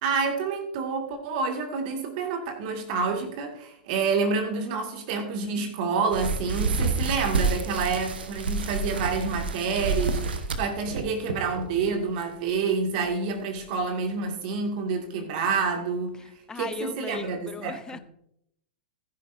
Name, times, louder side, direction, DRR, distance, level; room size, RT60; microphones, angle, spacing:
voice 1, 0.0-16.2 16.6-18.0, right 4 dB, 55° right, 4 dB, 2.1 m, -28 dB
sound 1, 6.1-11.8 12.2-12.5 13.0-13.1 13.6-13.7, right 4 dB, 75° right, 1.3 m, -29 dB
voice 2, 16.5-18.0, left 5 dB, 15° left, 13 dB, 0.4 m, -36 dB
15.0 x 10.5 x 2.7 m, 0.74 s
hypercardioid pair, 100°, 5 cm